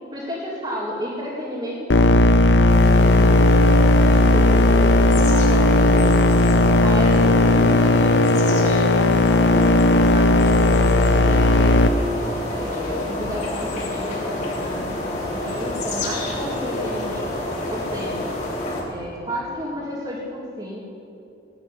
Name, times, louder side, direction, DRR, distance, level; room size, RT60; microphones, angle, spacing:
voice 1, 0.1-6.1 6.8-12.0 12.5-18.3 18.9-20.8, equal, 30° right, -6 dB, 2.5 m, -32 dB
sound 1, 1.9-11.9, left 2 dB, 85° left, 0.8 m, -16 dB
sound 2, 2.7-18.8, left 1 dB, 40° left, 3.5 m, -28 dB
17.5 x 7.7 x 9.9 m, 2.8 s
head